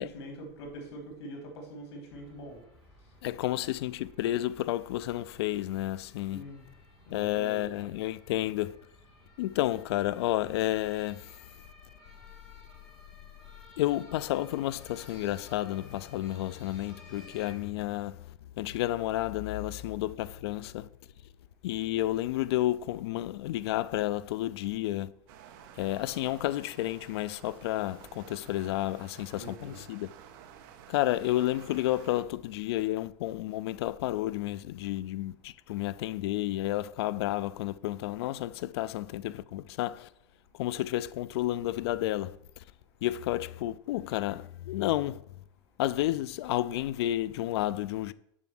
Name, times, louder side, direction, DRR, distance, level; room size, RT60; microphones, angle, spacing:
voice 1, 0.0-2.6 6.3-6.6 7.1-7.7 29.3-29.8, equal, 90° left, 3.2 m, -43 dB
sound 1, 2.1-17.5, left 1 dB, 5° left, 3.0 m, -56 dB
voice 2, 3.2-6.4 7.1-8.8 9.4-11.3 13.8-20.9 21.6-25.1 25.8-30.1 30.9-40.1 40.5-42.4 43.0-45.2 45.8-48.1, left 15 dB, 70° left, 0.4 m, -31 dB
sound 2, 25.3-32.2, right 9 dB, 50° right, 0.9 m, -52 dB
7.4 x 6.1 x 5.9 m
supercardioid pair, 170°, 14 cm